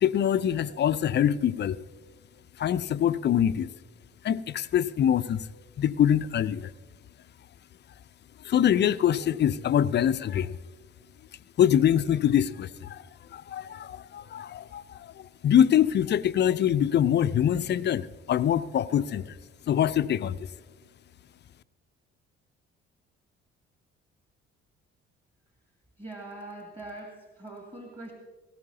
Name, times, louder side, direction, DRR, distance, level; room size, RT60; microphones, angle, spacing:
voice 1, 0.0-1.8 2.6-3.7 4.2-5.5 5.8-6.7 8.4-10.6 11.6-13.0 13.3-19.4 19.7-20.5, left 10 dB, 30° left, 15 dB, 0.5 m, -24 dB
voice 2, 26.0-28.1, right 2 dB, 15° right, 1 dB, 2.2 m, -42 dB
19.0 x 16.5 x 2.8 m, 1.3 s
figure-of-eight pair, 50°, 34 cm